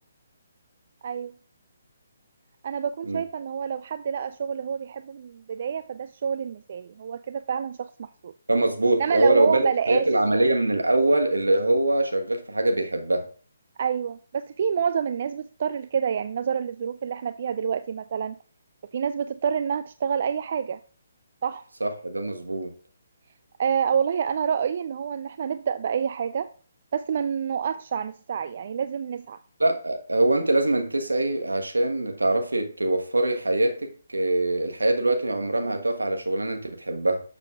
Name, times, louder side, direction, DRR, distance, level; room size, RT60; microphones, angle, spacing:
voice 1, 2.6-8.3 9.0-10.1 13.8-18.4 18.9-20.8 21.4-21.6 23.6-26.5 26.9-29.4, right 7 dB, 45° right, 0.3 m, -27 dB
voice 2, 8.5-13.3 21.8-22.7 29.6-37.2, right 2 dB, 75° right, 1.3 m, -23 dB
11.5 x 6.8 x 2.4 m
figure-of-eight pair, 140°, 0 cm